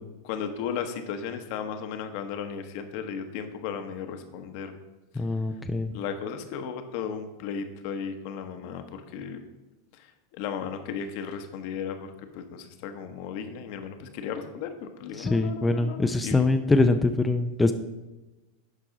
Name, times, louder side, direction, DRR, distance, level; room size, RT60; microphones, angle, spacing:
voice 1, 0.2-4.7 5.1-5.2 5.9-9.4 9.9-12.1 12.3-16.5, left 7 dB, 60° left, 7 dB, 1.0 m, -35 dB
voice 2, 5.2-5.9 15.2-17.7, left 2 dB, 10° left, 6 dB, 0.5 m, -23 dB
11.5 x 4.7 x 3.9 m, 1.1 s
hypercardioid pair, 100°, 0 cm